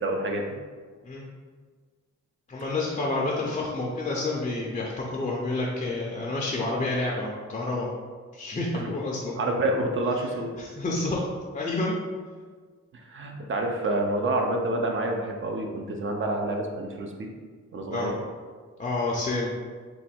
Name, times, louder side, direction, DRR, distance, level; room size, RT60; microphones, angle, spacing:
voice 1, 0.0-0.4 8.8-8.9 9.4-10.5 13.1-17.3 17.7-18.2, right 1 dB, 45° right, 2 dB, 0.4 m, -28 dB
voice 2, 2.5-7.9 8.3-9.4 10.6-11.2 11.5-11.9 17.9-18.1 18.8-19.5, left 2 dB, 25° left, -3 dB, 0.4 m, -29 dB
3.1 x 2.2 x 4.2 m, 1.5 s
wide cardioid pair, 140°, 30 cm